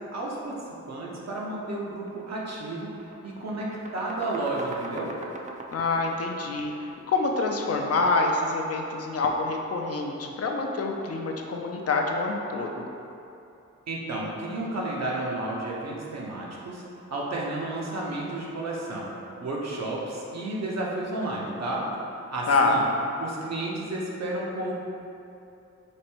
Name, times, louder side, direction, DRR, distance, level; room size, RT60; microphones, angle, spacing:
voice 1, 0.1-0.6 0.9-2.9 3.2-5.1 13.9-16.8 17.1-19.1 19.4-21.8 22.3-22.8 23.2-24.7, right 2 dB, 60° right, -4 dB, 0.8 m, -32 dB
sound 1, 2.0-2.2 2.6-7.5, right 2 dB, 25° right, 0.3 m, -41 dB
voice 2, 5.7-6.7 7.1-12.9 22.5-22.8, left 3 dB, 55° left, 1 dB, 0.5 m, -26 dB
5.1 x 2.1 x 4.4 m, 2.8 s
wide cardioid pair, 105°, 29 cm